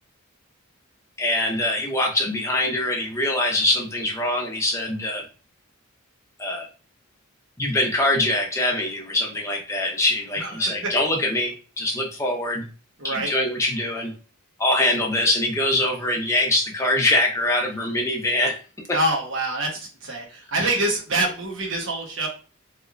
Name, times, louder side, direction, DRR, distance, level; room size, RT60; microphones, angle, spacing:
voice 1, 1.2-5.2 6.4-6.7 7.6-12.7 13.0-14.1 14.6-18.5 18.9-19.0, left 1 dB, 15° left, 0 dB, 0.6 m, -23 dB
voice 2, 13.0-13.3 18.9-22.3, right 2 dB, 65° right, 0 dB, 1.0 m, -26 dB
3.2 x 2.9 x 2.4 m, 0.36 s
head